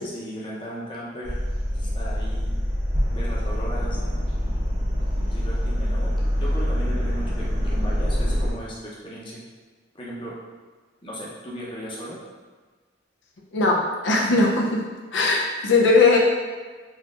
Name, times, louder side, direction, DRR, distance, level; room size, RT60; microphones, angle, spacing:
voice 1, 0.0-1.4 1.7-2.5 3.1-4.0 5.3-9.4 9.9-10.3 11.0-12.2, equal, 30° left, -6 dB, 0.7 m, -36 dB
sound 1, 1.2-8.5, equal, 80° right, 1.2 m, -25 dB
voice 2, 13.5-16.2, left 3 dB, 90° left, -2 dB, 0.6 m, -19 dB
4.2 x 2.9 x 2.4 m, 1.4 s
head